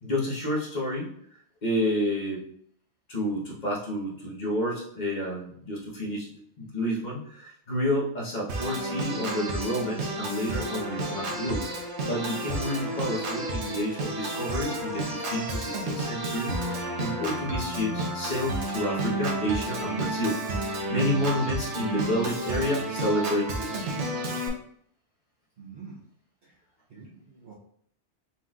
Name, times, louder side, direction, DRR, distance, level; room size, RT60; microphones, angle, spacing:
voice 1, 0.0-1.1 1.6-2.4 3.1-6.3 6.6-11.6 12.0-20.4 20.7-23.9, equal, 40° left, -4 dB, 1.3 m, -30 dB
Organ, 8.5-24.5, right 2 dB, 85° right, 1.2 m, -31 dB
voice 2, 25.6-26.0 26.9-27.5, right 5 dB, 60° right, -6 dB, 1.1 m, -45 dB
4.4 x 3.9 x 2.4 m, 0.66 s
omnidirectional pair, 1.1 m